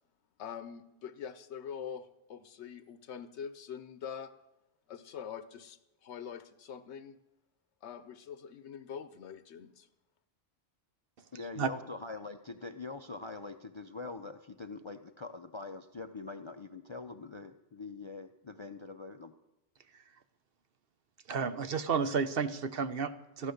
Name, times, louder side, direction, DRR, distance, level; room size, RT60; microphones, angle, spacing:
voice 1, 0.4-4.3 4.9-7.2 7.8-9.9, left 7 dB, 85° left, 12 dB, 1.0 m, -44 dB
voice 2, 11.3-19.3, left 3 dB, 40° left, 9 dB, 0.4 m, -43 dB
voice 3, 21.3-23.5, right 5 dB, 60° right, 11 dB, 1.0 m, -32 dB
14.0 x 11.0 x 6.5 m, 0.93 s
omnidirectional pair, 1.1 m